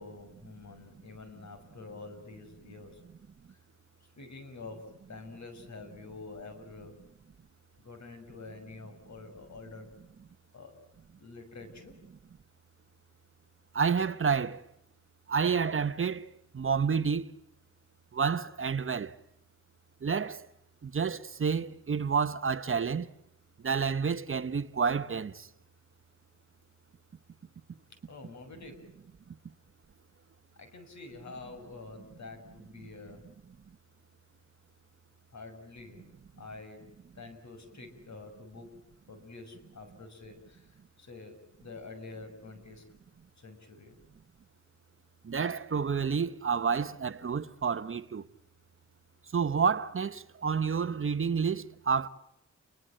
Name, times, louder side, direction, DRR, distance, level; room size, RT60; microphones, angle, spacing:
voice 1, 0.0-3.0 3.5-3.6 4.0-7.0 7.8-9.9 10.5-10.8 11.2-12.0 28.1-28.8 30.6-33.2 35.3-36.8 37.1-38.7 39.1-42.8 43.4-43.9, left 3 dB, 65° left, 6.7 m, -47 dB
voice 2, 13.7-14.6 15.3-16.3 16.5-17.2 18.1-19.1 20.0-20.4 20.8-23.1 23.6-25.5 45.2-48.2 49.3-52.1, right 6 dB, 45° right, 0.9 m, -29 dB
29.5 x 22.5 x 7.6 m
wide cardioid pair, 120°, 30 cm